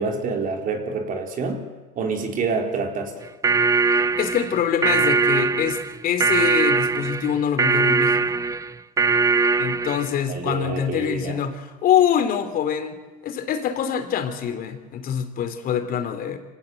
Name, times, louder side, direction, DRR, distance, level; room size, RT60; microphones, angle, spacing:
voice 1, 0.0-1.6 1.9-3.3 10.3-11.4, right 4 dB, 40° right, 3 dB, 4.3 m, -27 dB
sound 1, 3.2-10.2, right 4 dB, 15° right, 0.7 m, -21 dB
voice 2, 3.9-8.4 9.6-16.4, left 8 dB, 45° left, 8 dB, 3.4 m, -25 dB
26.0 x 17.5 x 8.0 m, 1.3 s
supercardioid pair, 110°, 21 cm